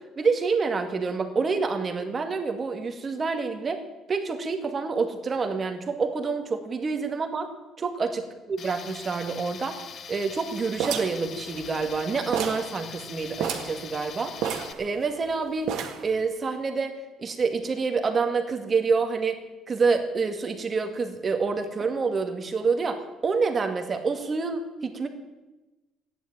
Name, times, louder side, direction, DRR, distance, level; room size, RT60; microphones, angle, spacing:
voice 1, 0.0-3.8 4.1-7.5 7.8-9.8 10.1-14.3 14.8-15.7 16.0-19.4 19.7-25.1, right 4 dB, 30° right, 5 dB, 2.0 m, -27 dB
Tools, 8.6-14.7, left 7 dB, 40° left, 1.1 m, -42 dB
sound 1, 10.8-12.0 12.3-12.7 13.0-13.1 13.4-13.8 14.4-15.3 15.7-16.1, right 8 dB, 70° right, 1.9 m, -30 dB
14.5 x 10.5 x 8.9 m, 1.1 s
cardioid pair, 135°, 0 cm